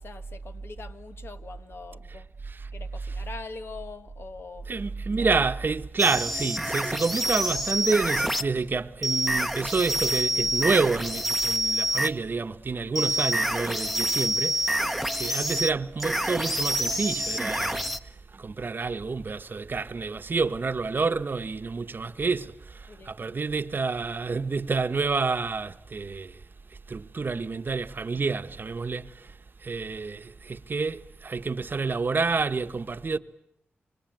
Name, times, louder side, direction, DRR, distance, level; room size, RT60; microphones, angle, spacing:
voice 1, 0.0-2.3 2.7-4.7 5.2-5.3 22.9-23.3, left 4 dB, 65° left, 1.5 m, -43 dB
voice 2, 4.7-14.8 15.1-26.4 26.9-29.3 29.6-33.2, right 4 dB, 50° right, 1.0 m, -29 dB
sound 1, 6.0-8.5 9.0-12.2 13.0-18.0, right 1 dB, ahead, 1.0 m, -27 dB
25.5 x 24.5 x 9.1 m
cardioid pair, 70°, 4 cm